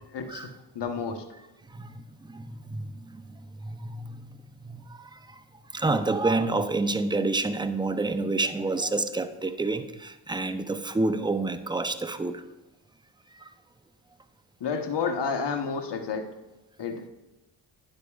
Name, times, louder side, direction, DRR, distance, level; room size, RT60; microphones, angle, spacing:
voice 1, 0.1-1.2 14.6-16.3 16.8-17.1, left 5 dB, 55° left, 6 dB, 1.2 m, -30 dB
voice 2, 1.7-3.2 3.6-5.2 5.7-12.4 13.4-13.5, right 3 dB, 10° right, 10 dB, 0.6 m, -29 dB
12.0 x 9.7 x 2.4 m, 1.0 s
cardioid pair, 55°, 49 cm